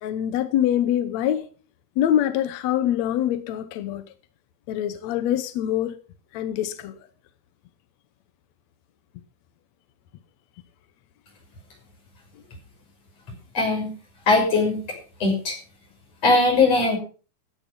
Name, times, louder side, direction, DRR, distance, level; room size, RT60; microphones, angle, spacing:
voice 1, 0.0-1.4 2.0-4.0 4.7-5.9 6.3-7.0, left 11 dB, 75° left, 1.6 m, -24 dB
voice 2, 13.5-13.9 14.3-14.8 15.2-15.6 16.2-17.0, left 3 dB, 40° left, 7.1 m, -19 dB
15.0 x 9.9 x 5.4 m
omnidirectional pair, 4.4 m